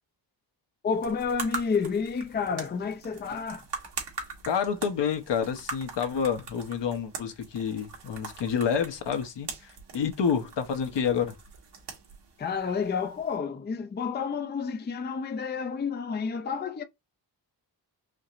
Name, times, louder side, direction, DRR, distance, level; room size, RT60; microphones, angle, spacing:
voice 1, 0.8-3.7 12.4-16.8, left 5 dB, 25° left, 0.5 m, -30 dB
sound 1, 0.9-13.4, right 4 dB, 70° right, 1.7 m, -42 dB
voice 2, 4.4-11.3, left 7 dB, 75° left, 1.1 m, -28 dB
5.0 x 2.9 x 2.5 m
wide cardioid pair, 115°, 42 cm